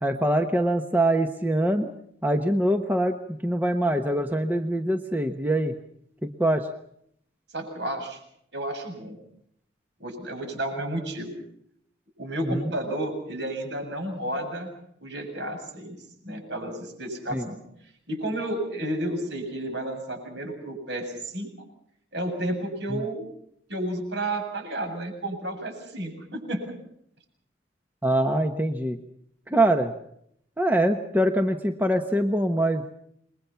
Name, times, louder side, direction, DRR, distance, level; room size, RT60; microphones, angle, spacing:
voice 1, 0.0-1.9 2.2-3.2 3.4-5.7 6.2-6.7 12.4-12.7 17.3-17.5 22.9-23.0 28.0-29.0 29.5-29.9 30.6-32.8, right 1 dB, 10° right, 6 dB, 1.1 m, -24 dB
voice 2, 7.5-8.2 8.5-9.2 10.0-11.3 12.2-14.7 15.0-16.0 16.2-17.6 18.1-21.5 22.1-23.3 23.7-26.6, right 1 dB, 60° right, 4 dB, 7.7 m, -31 dB
28.5 x 22.0 x 5.8 m, 0.71 s
head